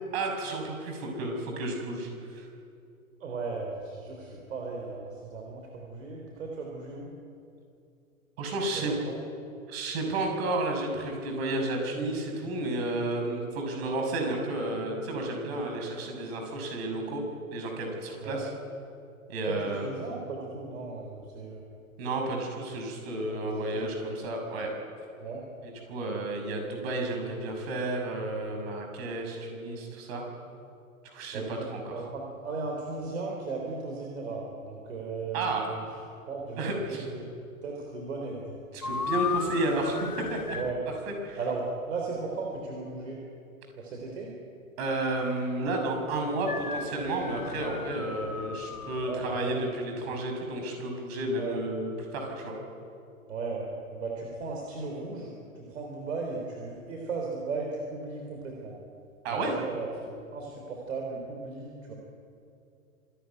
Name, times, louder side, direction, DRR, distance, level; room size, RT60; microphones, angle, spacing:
voice 1, 0.1-2.5 8.4-8.9 9.7-17.2 17.5-18.5 19.3-19.9 22.0-24.7 25.9-30.2 31.0-32.0 35.3-35.7 36.6-37.1 38.7-40.6 41.1-41.4 44.8-52.6 59.2-59.5, right 2 dB, 45° right, 2 dB, 6.4 m, -32 dB
voice 2, 3.2-7.1 8.7-9.2 18.2-18.5 19.5-21.6 23.3-23.9 25.2-25.4 31.3-35.8 36.3-37.3 37.6-38.5 40.5-40.8 41.4-43.2 43.7-44.3 49.0-49.6 51.4-51.6 53.3-58.7 59.3-61.9, right 3 dB, 60° right, 0 dB, 3.7 m, -36 dB
sound 1, 38.8-40.8 46.4-49.2, left 5 dB, 90° left, 1.6 m, -36 dB
26.0 x 11.5 x 9.6 m, 2.6 s
figure-of-eight pair, 115°, 43 cm